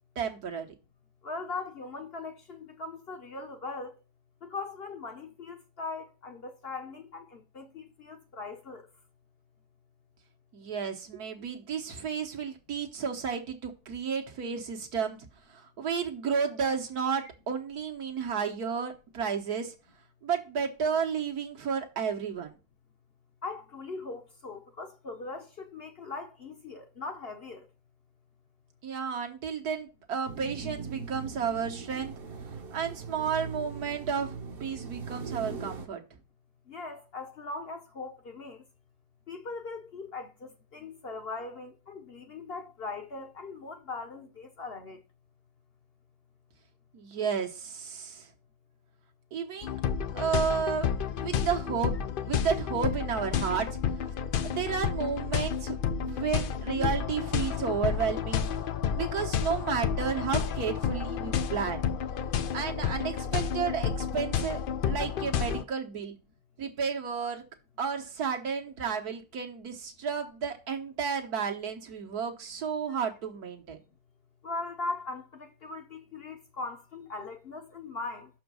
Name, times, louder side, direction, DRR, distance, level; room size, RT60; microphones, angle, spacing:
voice 1, 0.2-0.7 10.5-15.2 15.5-19.7 20.2-22.5 28.8-32.1 32.7-36.0 46.9-48.3 49.3-49.8 50.1-51.9 52.3-53.7 54.4-58.5 58.9-61.8 62.5-66.2 66.6-67.4 67.8-73.8, right 6 dB, 75° right, 1.7 m, -32 dB
voice 2, 1.2-3.9 4.4-8.9 17.2-17.3 23.4-27.7 36.7-38.6 39.3-45.0 74.4-78.3, left 3 dB, 50° left, 0.8 m, -40 dB
sound 1, 30.3-35.9, right 4 dB, 45° right, 0.9 m, -40 dB
sound 2, 49.6-65.6, left 7 dB, 80° left, 0.4 m, -31 dB
6.3 x 4.6 x 6.2 m
omnidirectional pair, 1.6 m